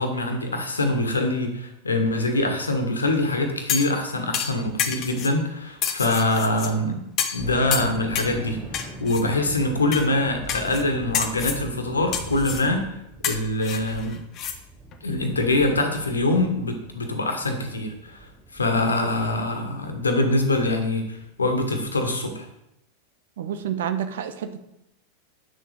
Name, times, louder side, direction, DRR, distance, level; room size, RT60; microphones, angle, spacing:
voice 1, 0.0-7.0 7.3-12.8 13.2-14.2 15.0-22.5, left 2 dB, 75° left, 5 dB, 1.5 m, -24 dB
sound 1, 3.6-6.2 6.5-6.6 7.1-21.9, right 1 dB, 5° right, 1.3 m, -42 dB
sound 2, 3.7-4.0 4.3-5.3 5.8-6.7 7.2-7.4 7.7-8.4 8.7-9.2 9.9-10.1 10.5-10.8 11.1-11.6 12.1-12.7 13.2-14.6 14.9-15.0, left 8 dB, 35° left, 1.0 m, -29 dB
voice 2, 23.4-24.6, right 9 dB, 60° right, 9 dB, 0.9 m, -29 dB
8.8 x 6.7 x 5.0 m, 0.83 s
figure-of-eight pair, 90°, 0 cm